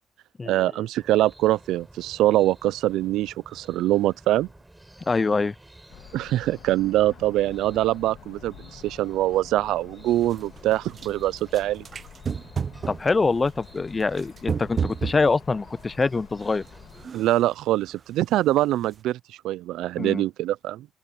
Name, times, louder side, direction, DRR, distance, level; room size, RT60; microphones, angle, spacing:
voice 1, 0.5-4.5 6.1-11.8 17.1-19.2 19.4-20.9, right 15 dB, 90° right, 0.4 m, -24 dB
sound 1, 1.0-17.1, right 1 dB, 10° right, 7.8 m, -51 dB
voice 2, 5.1-5.5 12.9-16.6 20.0-20.2, left 4 dB, 30° left, 0.5 m, -24 dB
sound 2, 5.9-17.1, left 11 dB, 85° left, 2.6 m, -49 dB
sound 3, 10.2-11.1 11.4-13.1 13.5-15.4 15.9-16.0 16.4-16.7 17.0-17.5 17.9-18.0 18.3-18.5 18.8-19.0, right 6 dB, 45° right, 0.7 m, -32 dB
open air
cardioid pair, 90°, 0 cm